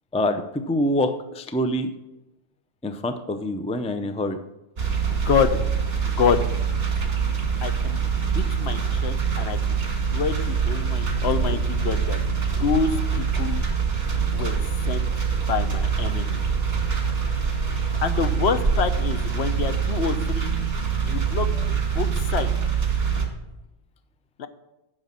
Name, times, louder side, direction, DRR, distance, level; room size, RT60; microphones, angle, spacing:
voice 1, 0.1-1.9 2.8-4.4 11.5-11.6 14.4-14.7 21.5-21.8, left 1 dB, 10° left, 9 dB, 0.4 m, -26 dB
sound 1, 4.8-23.3, right 6 dB, 60° right, 2.0 m, -24 dB
voice 2, 5.2-5.6 6.1-6.4 7.6-8.0 8.3-9.8 10.1-12.2 12.6-13.6 14.3-15.1 15.5-16.4 18.0-20.5 21.0-21.5 21.9-22.5 24.4-24.5, left 6 dB, 70° left, 10 dB, 1.0 m, -26 dB
9.4 x 6.5 x 7.5 m, 0.96 s
omnidirectional pair, 1.2 m